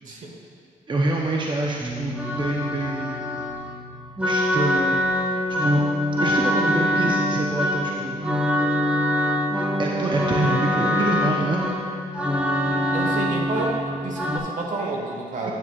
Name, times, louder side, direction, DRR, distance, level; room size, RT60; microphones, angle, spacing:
voice 1, 0.0-0.3 12.6-15.5, right 2 dB, 65° right, -1 dB, 1.5 m, -30 dB
voice 2, 0.9-3.2 4.2-5.9 6.2-8.2 9.8-11.7 15.4-15.5, right 2 dB, 35° right, -2 dB, 0.8 m, -26 dB
sound 1, 1.8-14.4, left 1 dB, 10° right, 1.0 m, -24 dB
9.6 x 9.0 x 2.4 m, 2.4 s
cardioid pair, 70°, 14 cm